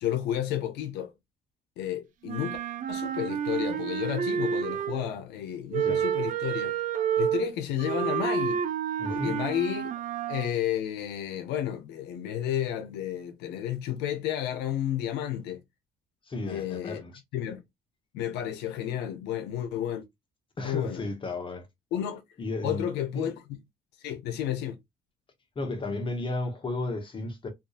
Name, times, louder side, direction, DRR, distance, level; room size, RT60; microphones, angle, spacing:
voice 1, 0.0-1.1 1.8-2.6 2.9-6.8 7.2-8.6 9.1-9.9 10.3-15.6 16.5-17.0 17.3-17.6 18.1-20.0 20.6-21.0 21.9-22.2 22.6-23.6 24.0-24.8, left 11 dB, 85° left, 0.5 m, -31 dB
Wind instrument woodwind instrument, 2.2-5.2 5.7-10.6, right 8 dB, 50° right, 0.5 m, -30 dB
voice 2, 9.0-9.4 16.3-17.1 20.6-21.7 22.4-23.3 25.6-27.5, left 2 dB, 30° left, 0.7 m, -33 dB
2.6 x 2.3 x 2.4 m
cardioid pair, 110°, 17 cm